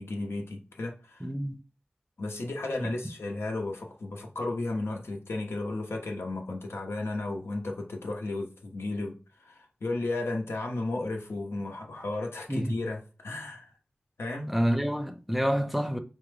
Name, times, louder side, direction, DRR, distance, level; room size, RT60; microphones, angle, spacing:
voice 1, 0.0-1.3 2.2-13.7 14.2-14.5, left 2 dB, 85° left, 0.8 m, -34 dB
voice 2, 1.2-1.6 2.8-2.9 12.5-12.8 14.5-16.0, equal, 5° right, 0.6 m, -28 dB
4.8 x 2.2 x 3.2 m
cardioid pair, 45°, 4 cm